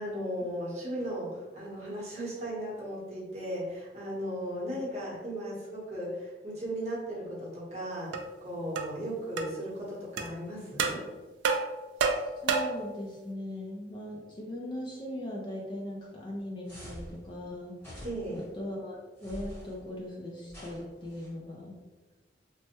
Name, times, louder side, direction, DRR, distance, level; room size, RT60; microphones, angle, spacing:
voice 1, 0.0-11.0 18.0-18.4, equal, 40° right, -5 dB, 0.9 m, -36 dB
sound 1, 8.1-8.2 8.8-8.9 9.4-9.5 10.2-10.3 10.8-11.0 11.4-12.9, right 4 dB, 80° right, 0.3 m, -29 dB
voice 2, 12.4-17.8 18.5-21.8, left 1 dB, 25° left, -2 dB, 0.4 m, -39 dB
sound 2, 16.7-17.2 17.8-18.4 19.2-19.7 20.5-21.3, equal, 10° left, 1.0 m, -45 dB
3.2 x 2.1 x 2.8 m, 1.2 s
head